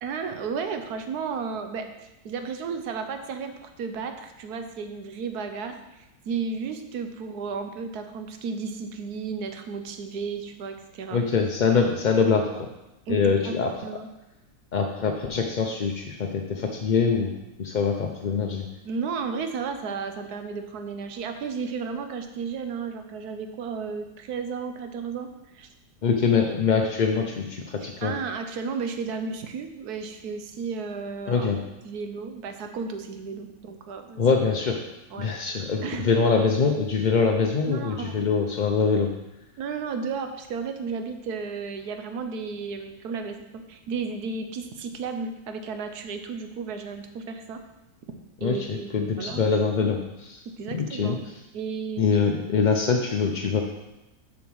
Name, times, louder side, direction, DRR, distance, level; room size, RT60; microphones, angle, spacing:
voice 1, 0.0-1.9 2.2-11.2 13.1-13.6 13.8-14.1 18.8-25.7 28.0-31.5 31.8-34.2 35.1-36.1 37.7-38.3 39.6-47.6 48.4-49.4 50.6-51.2 51.5-52.2, right 5 dB, 85° right, 7 dB, 1.3 m, -33 dB
voice 2, 11.1-12.7 13.1-13.8 14.7-17.3 17.6-18.7 26.0-28.1 31.3-31.6 34.2-34.8 35.2-39.1 48.4-50.4 50.7-51.3 52.0-53.6, left 5 dB, 55° left, 2 dB, 0.5 m, -24 dB
7.0 x 5.1 x 6.3 m, 0.95 s
omnidirectional pair, 1.6 m